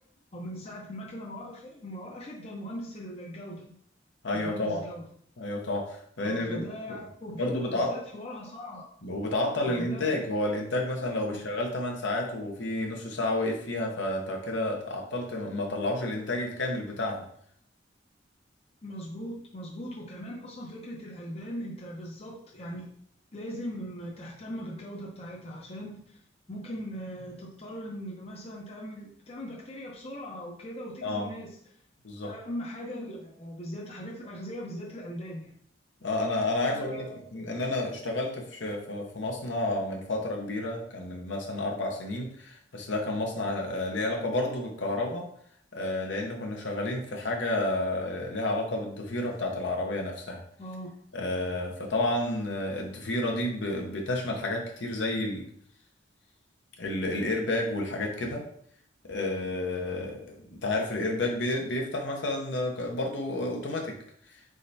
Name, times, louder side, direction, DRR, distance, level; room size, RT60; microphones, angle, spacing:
voice 1, 0.3-3.7 4.3-5.0 6.2-8.8 9.6-10.2 11.2-11.4 18.8-22.9 23.3-26.2 26.5-31.5 32.2-35.5 36.7-37.5 50.6-51.0, equal, 35° left, -2 dB, 0.6 m, -40 dB
voice 2, 4.2-4.8 5.4-6.6 7.4-7.9 9.0-17.2 31.0-31.2 32.0-32.3 36.0-37.0 37.3-45.3 45.7-50.4 51.1-55.5 56.8-58.4 59.1-63.9, left 2 dB, 70° left, 1 dB, 0.9 m, -30 dB
4.4 x 3.7 x 2.6 m, 0.64 s
head